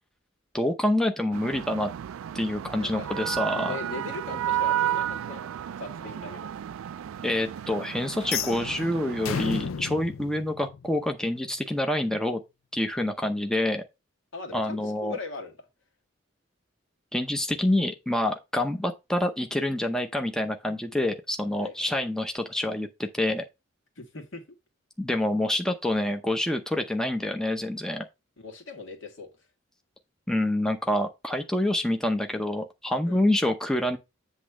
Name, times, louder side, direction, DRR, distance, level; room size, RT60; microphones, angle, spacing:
voice 1, 0.5-1.9 2.3-3.8 7.2-12.4 12.7-13.8 14.5-15.2 17.1-23.4 25.0-28.0 30.3-34.0, left 1 dB, 5° left, 0.6 m, -27 dB
sound 1, 1.3-9.4, right 11 dB, 85° right, 0.3 m, -32 dB
voice 2, 2.8-3.1 3.6-6.5 14.3-15.5 21.6-21.7 24.0-24.4 28.4-29.3 33.1-33.2, left 3 dB, 70° left, 2.0 m, -39 dB
sound 2, 8.2-11.3, left 7 dB, 85° left, 0.5 m, -33 dB
8.3 x 3.1 x 6.1 m
head